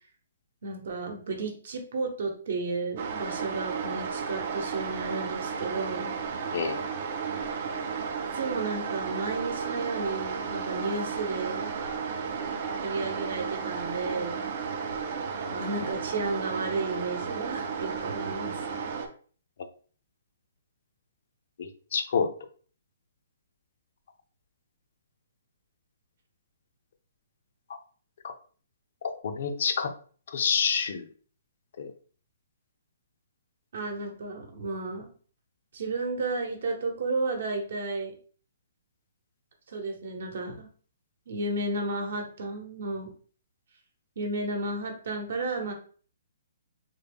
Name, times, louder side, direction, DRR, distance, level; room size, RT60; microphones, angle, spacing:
voice 1, 0.6-6.2 8.3-11.7 12.8-14.5 15.4-18.9 33.7-35.1 35.7-38.1 39.7-40.7 41.3-43.1 44.2-45.7, right 3 dB, 55° right, 3 dB, 0.9 m, -33 dB
sound 1, 3.0-19.1, right 6 dB, 35° right, 0.4 m, -33 dB
voice 2, 6.5-6.9 21.6-22.3 28.2-28.3 29.2-29.9 30.3-31.0 31.8-31.9, left 6 dB, 50° left, 8 dB, 0.5 m, -27 dB
3.6 x 2.2 x 3.4 m, 0.43 s
hypercardioid pair, 175°, 0 cm